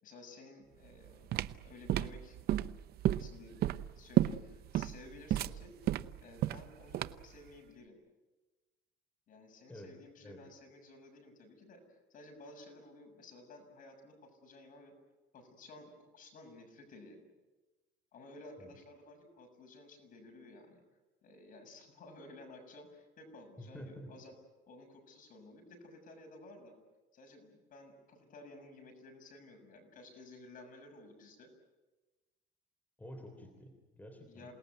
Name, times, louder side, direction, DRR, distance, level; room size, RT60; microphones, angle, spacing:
voice 1, 0.0-2.4 3.1-5.8 6.2-8.0 9.3-14.9 15.3-17.2 18.1-20.8 21.2-24.3 24.7-26.8 27.1-31.5 34.2-34.5, left 2 dB, 45° left, 4 dB, 6.9 m, -54 dB
sound 1, 0.9-7.4, right 12 dB, 55° right, 0.8 m, -32 dB
voice 2, 9.7-10.5 18.6-18.7 23.6-24.1 33.0-34.5, equal, 10° left, 5 dB, 3.5 m, -50 dB
28.0 x 19.0 x 9.4 m, 1.2 s
cardioid pair, 135°, 19 cm